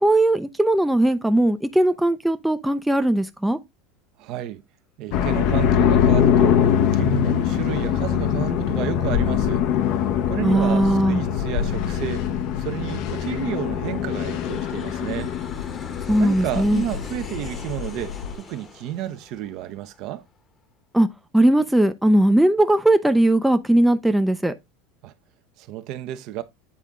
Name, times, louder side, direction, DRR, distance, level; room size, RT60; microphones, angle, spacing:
voice 1, 0.0-3.6 10.4-11.2 16.1-16.8 20.9-21.1 21.3-24.5, right 1 dB, 5° right, 0.5 m, -19 dB
voice 2, 4.2-4.6 5.0-9.7 10.3-12.3 12.6-15.3 16.2-20.2 25.0-25.1 25.6-26.4, right 13 dB, 55° right, 0.8 m, -31 dB
sound 1, 5.1-18.3, left 9 dB, 60° left, 0.8 m, -23 dB
Aircraft, 9.2-20.3, left 5 dB, 30° left, 1.1 m, -43 dB
8.5 x 3.6 x 3.7 m
supercardioid pair, 115°, 0 cm